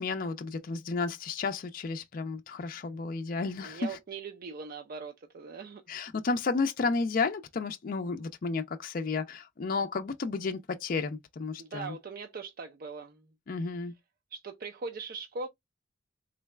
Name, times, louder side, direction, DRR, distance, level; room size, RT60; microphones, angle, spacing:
voice 1, 0.0-4.0 5.9-12.0 13.5-13.9, left 4 dB, 50° left, 0.4 m, -32 dB
voice 2, 3.6-5.8 11.6-13.3 14.3-15.5, right 4 dB, 50° right, 0.5 m, -40 dB
3.9 x 2.2 x 3.2 m
head